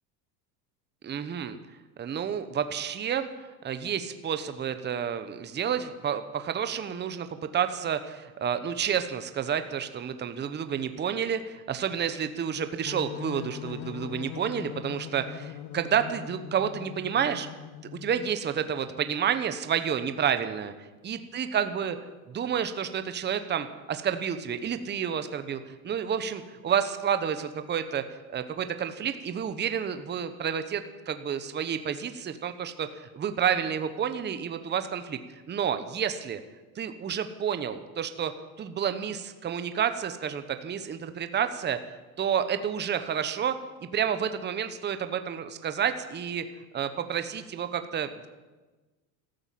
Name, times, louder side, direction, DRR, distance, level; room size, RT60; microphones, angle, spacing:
voice 1, 1.0-1.6 2.0-7.3 7.5-17.5 18.0-20.7 21.0-22.0 22.3-28.1 28.3-35.2 35.5-36.4 36.7-38.3 38.6-41.8 42.2-43.6 43.9-46.4 46.7-48.3, right 8 dB, 25° right, 10 dB, 1.0 m, -30 dB
sound 1, 12.9-18.4, left 12 dB, 65° left, 1.3 m, -41 dB
14.0 x 13.0 x 7.6 m, 1.2 s
supercardioid pair, 125°, 44 cm